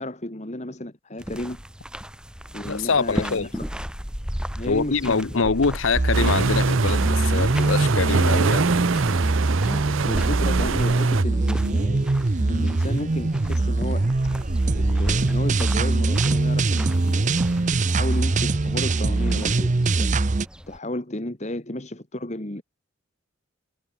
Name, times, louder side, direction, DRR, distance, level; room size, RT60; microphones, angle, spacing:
voice 1, 0.0-1.6 2.5-3.6 4.5-5.4 9.6-12.1 12.4-14.1 14.7-17.4 17.8-20.1 20.7-22.6, left 1 dB, 35° left, 2.0 m, -33 dB
sound 1, 1.2-20.8, equal, 5° right, 3.1 m, -37 dB
voice 2, 2.7-3.5 4.7-8.6, left 4 dB, 80° left, 0.9 m, -24 dB
sound 2, 6.0-20.5, right 2 dB, 40° right, 0.6 m, -22 dB
sound 3, 6.1-11.2, right 6 dB, 75° right, 0.6 m, -26 dB
head